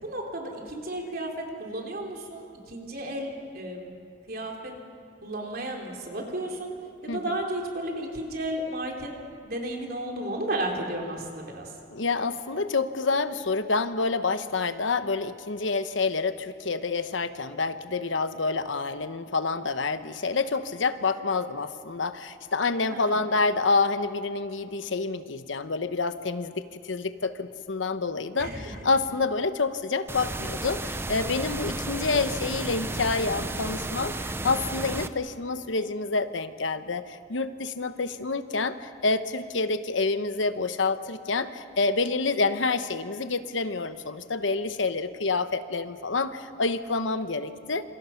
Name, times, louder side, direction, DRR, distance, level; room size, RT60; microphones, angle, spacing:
voice 1, 0.0-3.9 4.3-4.7 5.2-6.7 7.0-9.1 9.4-11.7 22.9-23.2 28.4-28.8, right 1 dB, 55° right, 1 dB, 3.7 m, -33 dB
voice 2, 11.9-47.8, left 3 dB, 90° left, 11 dB, 1.1 m, -28 dB
sound 1, 30.1-35.1, right 2 dB, 15° right, 0.7 m, -33 dB
27.0 x 27.0 x 5.9 m, 2.5 s
head